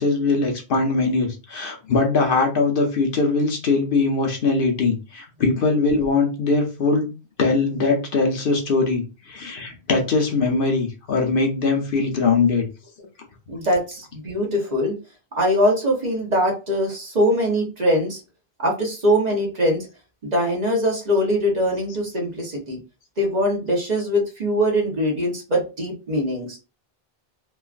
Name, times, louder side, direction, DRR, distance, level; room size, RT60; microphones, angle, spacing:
voice 1, 0.0-7.1 7.4-12.7, left 3 dB, 65° left, 3 dB, 0.8 m, -21 dB
voice 2, 13.5-14.9 15.4-18.2 18.6-19.9 20.2-22.8 23.2-26.6, equal, 45° right, 0 dB, 1.0 m, -22 dB
3.1 x 2.3 x 2.4 m, 0.30 s
omnidirectional pair, 1.0 m